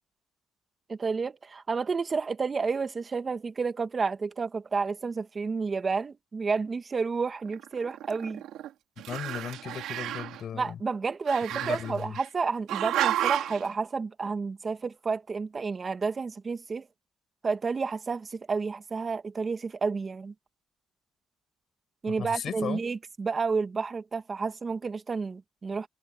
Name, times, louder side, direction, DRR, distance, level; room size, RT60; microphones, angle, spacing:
voice 1, 0.9-8.4 10.5-16.9 17.4-20.3 22.0-25.9, right 4 dB, 35° right, 1.6 m, -30 dB
Growling, 7.5-8.7 9.0-10.4 11.3-12.3 12.7-13.6, right 12 dB, 90° right, 3.1 m, -31 dB
voice 2, 9.1-10.8 11.5-12.2 22.1-22.8, left 8 dB, 60° left, 7.6 m, -36 dB
cardioid pair, 90°, 0 cm